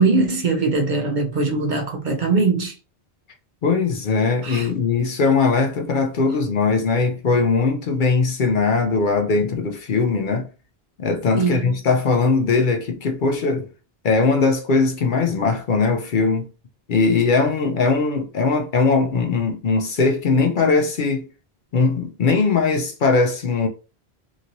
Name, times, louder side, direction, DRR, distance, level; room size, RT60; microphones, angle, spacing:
voice 1, 0.0-2.7 4.4-4.7 11.4-11.8, right 4 dB, 55° right, 0.7 m, -21 dB
voice 2, 3.6-10.5 11.0-13.7 14.0-16.5 16.9-21.3 21.7-23.7, left 4 dB, 60° left, 0.6 m, -20 dB
2.9 x 2.8 x 2.6 m
omnidirectional pair, 1.1 m